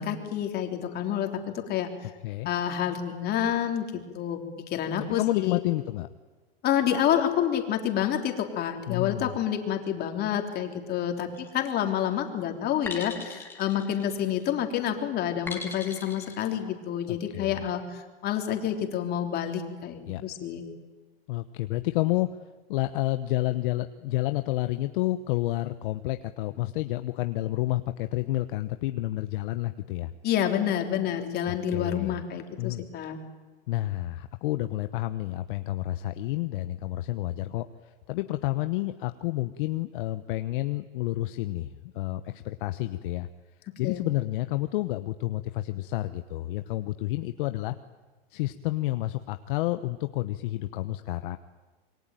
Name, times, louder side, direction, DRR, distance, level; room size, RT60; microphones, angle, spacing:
voice 1, 0.0-2.1 2.4-4.4 4.7-5.6 6.6-20.6 30.2-33.2 43.8-44.0, left 10 dB, 30° left, 4 dB, 3.6 m, -28 dB
voice 2, 5.0-6.1 8.9-9.3 17.1-17.6 20.1-20.2 21.3-22.3 22.7-30.1 31.5-32.2 32.6-32.8 33.7-43.3 43.8-47.7 48.3-51.4, left 17 dB, 55° left, 9 dB, 1.1 m, -30 dB
sound 1, 11.4-11.8 12.9-14.5 15.5-16.4, left 3 dB, 5° left, 3.4 m, -40 dB
27.0 x 23.0 x 9.2 m, 1.2 s
supercardioid pair, 140°, 31 cm